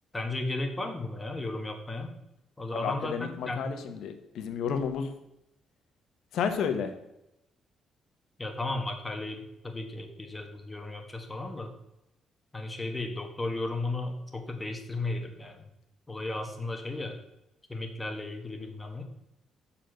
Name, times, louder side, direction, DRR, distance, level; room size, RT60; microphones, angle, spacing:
voice 1, 0.1-2.1 2.6-3.7 8.4-11.7 12.5-15.6 16.1-17.2 17.7-19.0, left 2 dB, 15° left, 5 dB, 1.4 m, -35 dB
voice 2, 2.7-5.1 6.3-6.9, left 7 dB, 75° left, 7 dB, 1.0 m, -31 dB
6.9 x 4.3 x 6.3 m, 0.86 s
cardioid pair, 90°, 0 cm